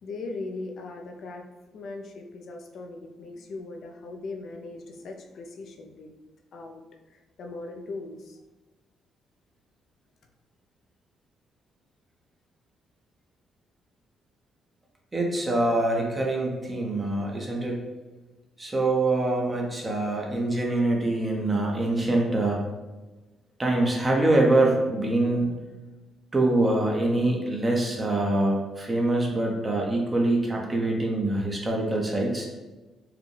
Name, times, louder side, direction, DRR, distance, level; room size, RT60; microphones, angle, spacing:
voice 1, 0.0-1.5 1.7-6.1 6.5-6.8 7.1-8.4, left 3 dB, 65° left, 3 dB, 0.5 m, -39 dB
voice 2, 15.1-17.8 18.6-22.6 23.6-25.5 26.3-32.5, right 2 dB, 25° right, 0 dB, 0.9 m, -24 dB
4.8 x 2.3 x 3.3 m, 1.2 s
cardioid pair, 90°, 0 cm